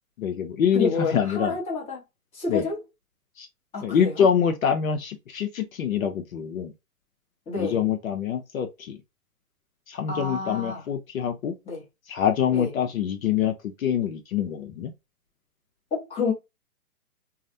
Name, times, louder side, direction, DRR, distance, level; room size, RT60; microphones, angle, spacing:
voice 1, 0.2-1.5 2.5-2.7 3.4-3.5 3.8-6.7 7.5-9.0 9.9-11.6 12.1-14.9, left 8 dB, 65° left, 0.6 m, -25 dB
voice 2, 0.7-2.0 2.3-2.8 3.7-4.3 7.5-7.8 10.1-10.8 11.7-11.8 12.5-12.7 15.9-16.3, left 4 dB, 15° left, 0.9 m, -29 dB
2.4 x 2.0 x 2.6 m
hypercardioid pair, 130°, 45 cm